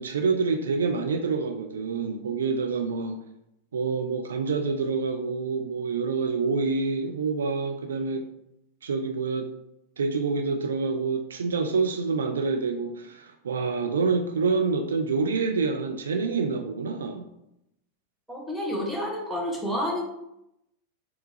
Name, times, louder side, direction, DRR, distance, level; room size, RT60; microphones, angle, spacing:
voice 1, 0.0-3.2 3.7-8.3 8.8-9.5 10.0-17.3, right 4 dB, 65° right, 6 dB, 0.3 m, -27 dB
voice 2, 18.3-20.0, left 1 dB, 5° right, -1 dB, 1.1 m, -29 dB
4.4 x 3.8 x 2.6 m, 0.83 s
figure-of-eight pair, 90°, 0 cm